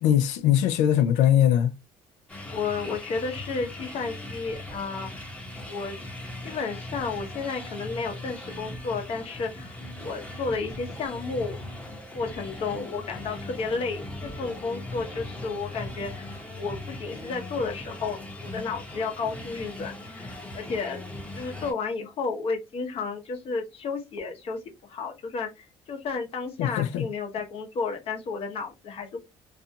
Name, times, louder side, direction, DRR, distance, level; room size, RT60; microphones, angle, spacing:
voice 1, 0.0-1.7 26.6-27.1, left 10 dB, 85° left, 0.5 m, -21 dB
sound 1, 2.3-21.7, left 1 dB, 10° left, 0.8 m, -39 dB
voice 2, 2.5-5.3 5.7-6.0 6.4-11.6 12.1-21.1 21.3-29.2, left 4 dB, 55° left, 0.8 m, -32 dB
2.6 x 2.2 x 2.6 m
cardioid pair, 100°, 12 cm